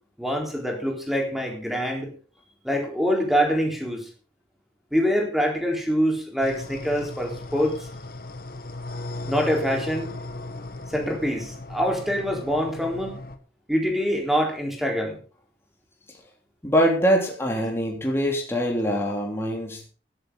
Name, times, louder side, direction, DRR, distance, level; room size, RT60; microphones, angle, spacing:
voice 1, 0.2-2.1 2.6-4.1 4.9-7.9 9.2-10.2 10.9-13.2 13.7-15.2, equal, ahead, 1 dB, 4.0 m, -25 dB
sound 1, 6.4-13.4, left 2 dB, 55° left, 1.5 m, -37 dB
voice 2, 16.6-19.9, equal, 15° left, -1 dB, 3.3 m, -23 dB
15.0 x 13.0 x 3.9 m, 0.38 s
head